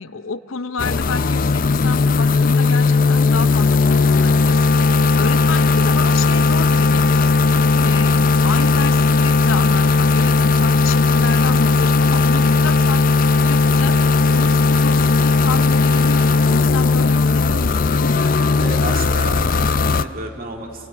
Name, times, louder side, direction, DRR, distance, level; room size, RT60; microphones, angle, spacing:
voice 1, 0.0-7.4 7.8-14.0 14.3-18.5, left 4 dB, 80° left, 13 dB, 0.7 m, -29 dB
sound 1, 0.8-20.0, left 3 dB, 45° left, 0.5 m, -16 dB
voice 2, 18.6-20.9, right 2 dB, 45° right, 3 dB, 2.3 m, -32 dB
27.0 x 16.5 x 9.3 m, 2.7 s
head